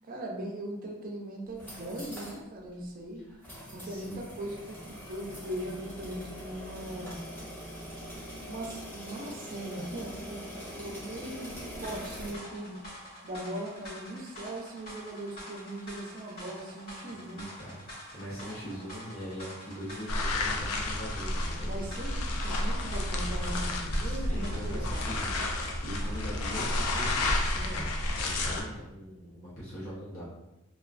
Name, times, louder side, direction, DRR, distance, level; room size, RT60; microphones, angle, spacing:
voice 1, 0.0-3.2 3.7-7.2 8.5-12.8 13.2-17.5 21.6-24.9 27.5-27.9, right 1 dB, 40° right, 0 dB, 0.4 m, -39 dB
sound 1, 1.5-2.4 2.7-2.8 3.4-12.3, equal, 10° left, 0.6 m, -43 dB
voice 2, 3.8-4.2 17.1-17.8 18.1-21.7 24.0-27.4 28.1-30.2, equal, 65° left, -8 dB, 0.8 m, -41 dB
sound 2, 11.8-27.9, equal, 45° left, 1.3 m, -46 dB
sound 3, 20.1-28.6, left 1 dB, 85° left, 0.4 m, -31 dB
2.3 x 2.2 x 2.4 m, 0.94 s
head